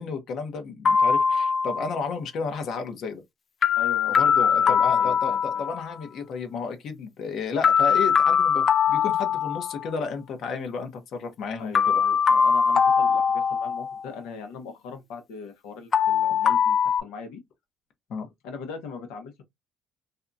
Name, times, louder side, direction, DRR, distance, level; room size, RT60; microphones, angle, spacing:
voice 1, 0.0-3.2 4.1-12.0 18.1-18.3, left 5 dB, 60° left, 0.9 m, -32 dB
sound 1, 0.9-2.0 3.6-5.9 7.6-10.0 11.8-14.1 15.9-17.0, left 7 dB, 40° left, 0.3 m, -21 dB
voice 2, 3.8-5.6 11.6-17.4 18.4-19.4, left 5 dB, 90° left, 1.0 m, -40 dB
2.7 x 2.3 x 2.6 m
cardioid pair, 115°, 0 cm